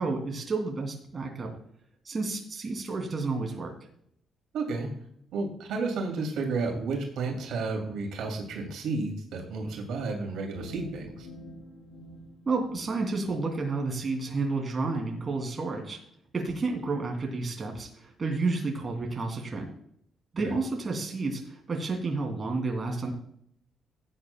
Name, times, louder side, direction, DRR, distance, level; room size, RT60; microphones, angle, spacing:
voice 1, 0.0-1.5 2.0-3.7 12.5-16.0 16.3-19.7 20.3-23.1, right 3 dB, 30° right, 2 dB, 2.7 m, -31 dB
voice 2, 4.5-4.9 5.3-11.3 20.4-20.5, right 3 dB, 90° right, 1 dB, 2.8 m, -32 dB
sound 1, 10.5-13.4, left 1 dB, 65° left, 5.0 m, -46 dB
17.0 x 9.0 x 2.3 m, 0.68 s
cardioid pair, 135°, 0 cm